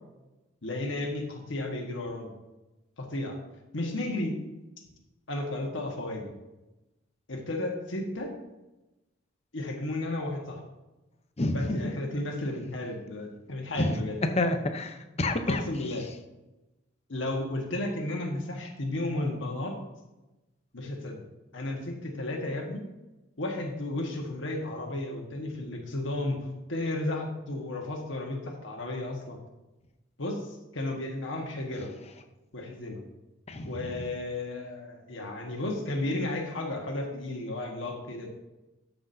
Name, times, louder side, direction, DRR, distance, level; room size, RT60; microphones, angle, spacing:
voice 1, 0.6-2.3 3.0-3.4 3.7-4.4 5.3-6.3 7.3-8.3 9.5-10.6 11.5-14.2 15.5-16.1 17.1-19.8 20.7-21.2 21.5-22.8 23.4-26.4 26.7-29.4 30.2-31.9 32.5-33.0 33.7-38.3, left 2 dB, 70° left, 1 dB, 1.4 m, -33 dB
voice 2, 11.4-11.9 13.8-15.6 33.5-34.0, left 1 dB, 30° left, 7 dB, 0.7 m, -29 dB
13.0 x 6.0 x 2.7 m, 1.0 s
head